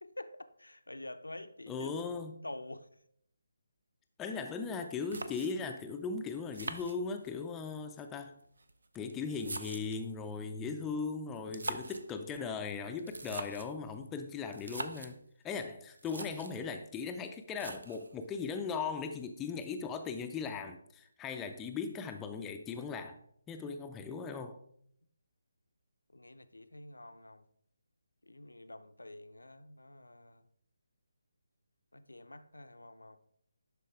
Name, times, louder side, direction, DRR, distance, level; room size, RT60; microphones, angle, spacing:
voice 1, 0.0-2.0 2.4-2.9 26.1-27.4 28.2-30.4 31.9-33.2, left 1 dB, 75° left, 0.5 m, -48 dB
voice 2, 1.7-2.4 4.2-8.3 8.9-15.2 15.4-23.2 23.5-24.6, left 5 dB, 10° left, 0.4 m, -38 dB
sound 1, 4.7-4.8 5.1-5.8 6.5-7.5 8.4-10.1 11.4-12.1 13.0-13.8 14.5-15.2 15.7-15.8 16.0-16.6 17.6-18.2, right 2 dB, 60° right, 0.6 m, -43 dB
11.5 x 4.2 x 3.4 m
figure-of-eight pair, 145°, 0 cm